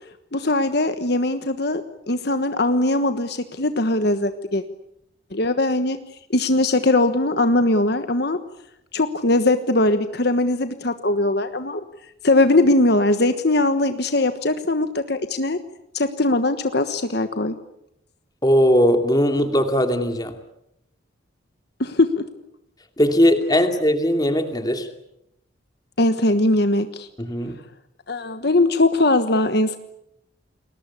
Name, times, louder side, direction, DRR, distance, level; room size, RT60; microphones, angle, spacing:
voice 1, 0.3-1.8 2.1-4.6 5.3-6.0 6.3-8.4 8.9-11.8 12.2-15.6 15.9-17.5 21.8-22.2 26.0-27.1 28.1-29.8, left 2 dB, 55° left, 9 dB, 1.3 m, -20 dB
voice 2, 18.4-20.3 23.0-24.9 27.2-27.6, equal, 20° left, 7 dB, 2.6 m, -19 dB
29.5 x 21.0 x 8.5 m, 0.81 s
head